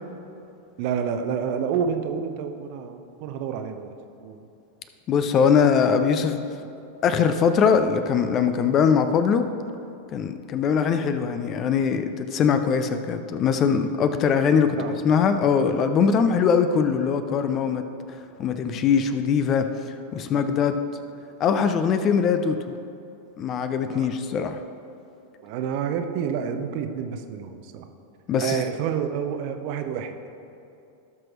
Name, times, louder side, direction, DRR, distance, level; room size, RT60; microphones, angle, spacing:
voice 1, 0.8-3.9 4.2-4.4 13.7-15.0 20.3-20.5 23.8-24.1 25.4-27.9 28.4-30.2, right 7 dB, 45° right, 6 dB, 0.7 m, -29 dB
voice 2, 5.1-6.5 7.0-9.4 10.1-17.8 18.4-20.8 21.4-22.8 23.4-24.6 28.3-28.6, left 6 dB, 30° left, 9 dB, 0.6 m, -22 dB
17.5 x 6.1 x 3.1 m, 2.7 s
figure-of-eight pair, 90°, 0 cm